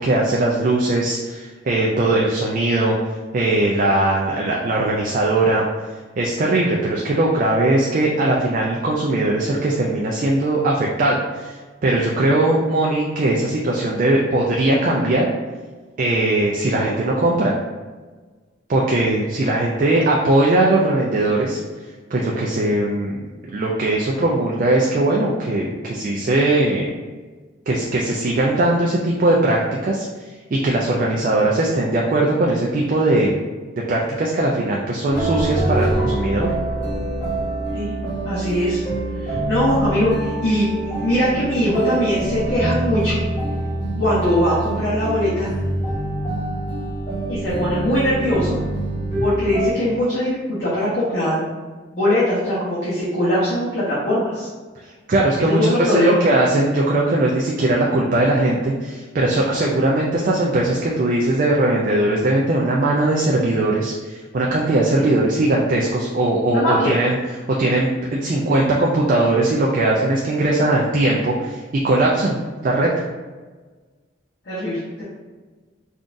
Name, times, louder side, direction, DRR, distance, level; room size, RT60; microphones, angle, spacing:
voice 1, 0.0-3.0 3.3-5.7 6.2-11.6 11.8-15.3 16.0-17.5 18.7-21.6 22.1-23.3 23.5-26.9 27.7-30.1 30.5-33.4 33.9-36.5 55.1-67.2 67.5-72.3 72.6-72.9, right 2 dB, 40° right, -3 dB, 0.3 m, -19 dB
sound 1, 35.1-49.7, right 1 dB, 30° left, 1.2 m, -25 dB
voice 2, 38.2-38.8 39.2-43.2 44.0-45.5 47.3-48.6 49.2-51.5 51.9-54.5 55.4-56.2 65.0-65.1 66.5-67.0 74.5-75.0, equal, 55° left, -9 dB, 0.8 m, -21 dB
3.7 x 2.4 x 2.5 m, 1.4 s
head